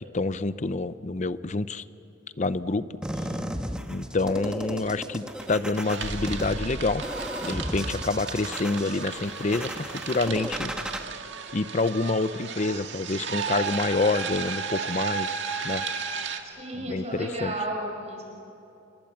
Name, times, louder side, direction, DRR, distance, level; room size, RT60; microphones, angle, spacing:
voice 1, 0.1-1.8 2.4-2.9 3.9-7.0 7.4-10.7 11.5-15.9 16.8-17.5, left 3 dB, 40° left, 15 dB, 0.6 m, -27 dB
sound 1, 3.0-11.0, equal, 5° right, 1.2 m, -34 dB
sound 2, 4.3-4.4 4.6-5.4 5.7-16.4, right 6 dB, 65° right, 1.9 m, -34 dB
voice 2, 16.4-18.2, right 1 dB, 35° right, 0 dB, 5.4 m, -33 dB
28.0 x 23.0 x 7.3 m, 2.8 s
head